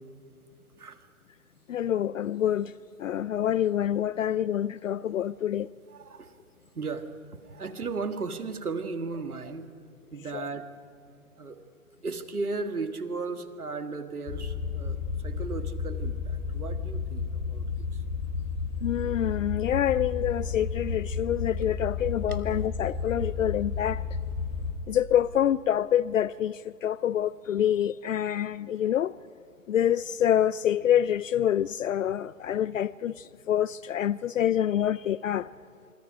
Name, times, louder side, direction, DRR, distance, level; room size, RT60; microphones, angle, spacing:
voice 1, 1.7-2.7 3.0-5.7 10.3-10.4 18.8-24.0 24.9-29.1 29.7-35.5, left 10 dB, 65° left, 0.5 m, -26 dB
voice 2, 5.9-6.3 6.8-7.0 7.3-9.7 10.1-10.7 11.4-11.6 12.0-18.0 22.3-22.4, right 4 dB, 85° right, 1.9 m, -36 dB
sound 1, 14.3-24.7, left 5 dB, 35° left, 3.5 m, -32 dB
27.0 x 24.5 x 5.1 m
hypercardioid pair, 140°, 43 cm